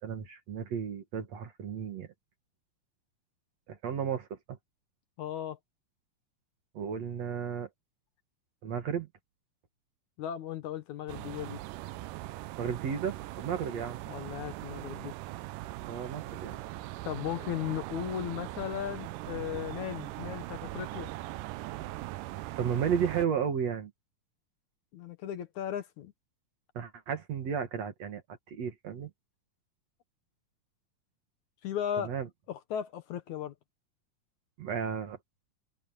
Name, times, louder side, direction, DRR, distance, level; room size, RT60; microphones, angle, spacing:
voice 1, 0.0-2.1 3.7-4.6 6.7-7.7 8.6-9.1 12.6-14.0 15.9-16.6 22.6-23.9 26.8-28.2 28.5-29.1 32.0-32.3 34.6-35.2, right 7 dB, 55° right, 2.8 m, -33 dB
voice 2, 5.2-5.6 10.2-11.6 14.1-15.1 17.0-21.1 24.9-26.1 31.6-32.1 32.5-33.5, left 10 dB, 65° left, 2.4 m, -36 dB
sound 1, 11.1-23.3, right 17 dB, 85° right, 2.2 m, -40 dB
omnidirectional pair, 3.9 m